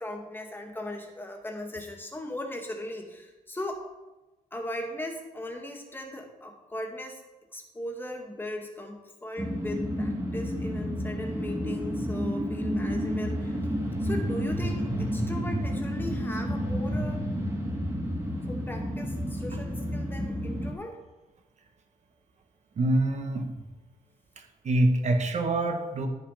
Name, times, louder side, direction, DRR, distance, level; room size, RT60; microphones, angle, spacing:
voice 1, 0.0-3.9 4.5-7.2 7.5-13.6 14.0-17.2 18.5-21.0, left 1 dB, 15° left, 2 dB, 2.0 m, -38 dB
sound 1, 9.4-20.7, equal, 15° right, 2.5 m, -30 dB
voice 2, 22.8-23.5 24.6-26.1, right 1 dB, 50° right, 5 dB, 1.6 m, -25 dB
10.5 x 7.1 x 5.1 m, 1.1 s
cardioid pair, 105°, 15 cm